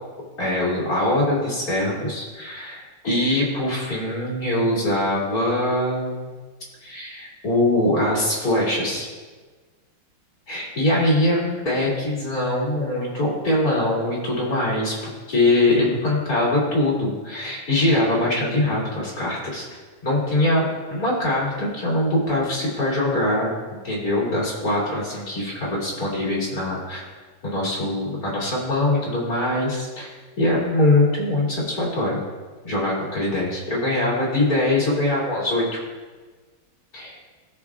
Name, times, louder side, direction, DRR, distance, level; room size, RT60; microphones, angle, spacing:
voice 1, 0.4-6.3 6.8-9.1 10.5-23.5 23.8-27.1 27.4-30.1 30.4-32.2 32.6-35.8 36.9-37.2, left 1 dB, 45° left, -6 dB, 3.1 m, -23 dB
18.0 x 6.7 x 2.4 m, 1.4 s
omnidirectional pair, 2.3 m